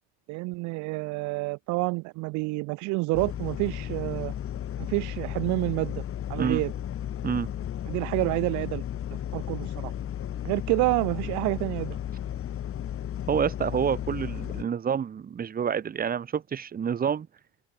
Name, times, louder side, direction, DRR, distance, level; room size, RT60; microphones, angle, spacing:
voice 1, 0.3-4.3 4.8-6.0 6.3-6.7 7.9-8.8 9.3-9.9 10.4-12.0, right 26 dB, 60° right, 0.5 m, -28 dB
sound 1, 3.1-14.6, left 10 dB, 40° left, 2.0 m, -34 dB
voice 2, 13.3-17.3, right 7 dB, 25° right, 1.1 m, -28 dB
open air
supercardioid pair, 95°, 32 cm